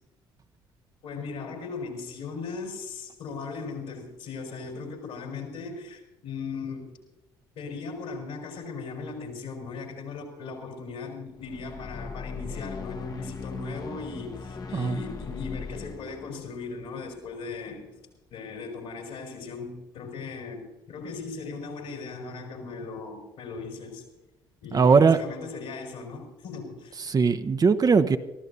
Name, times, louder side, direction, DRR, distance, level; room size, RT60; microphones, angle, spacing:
voice 1, 1.0-7.0 7.5-17.9 18.3-24.0 24.6-27.0, left 4 dB, 65° left, 2 dB, 4.5 m, -38 dB
sound 1, 11.3-17.7, left 4 dB, 35° left, 1.1 m, -39 dB
voice 2, 24.7-25.2 27.0-28.2, right 5 dB, 35° right, 10 dB, 0.8 m, -20 dB
23.5 x 15.0 x 2.7 m, 1.0 s
figure-of-eight pair, 50°, 12 cm